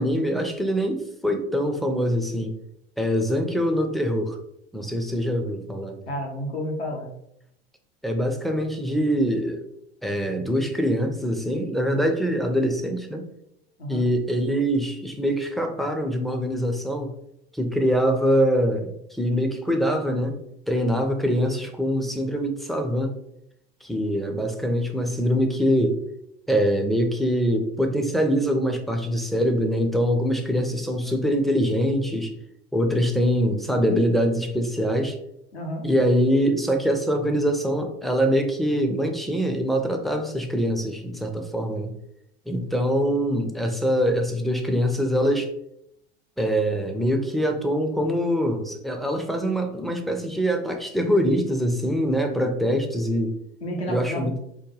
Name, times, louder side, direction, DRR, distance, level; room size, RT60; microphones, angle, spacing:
voice 1, 0.0-2.5 3.0-4.4 4.7-6.0 8.0-9.6 10.0-13.2 13.9-17.1 17.5-20.4 20.7-23.2 23.8-26.0 26.5-32.3 32.7-35.2 35.8-41.9 42.5-45.5 46.4-53.3 53.9-54.4, equal, ahead, 3 dB, 0.4 m, -24 dB
voice 2, 6.1-7.1 13.8-14.1 35.5-35.9 53.6-54.3, equal, 85° left, 0 dB, 0.9 m, -31 dB
3.5 x 2.2 x 3.1 m, 0.78 s
hypercardioid pair, 75°, 32 cm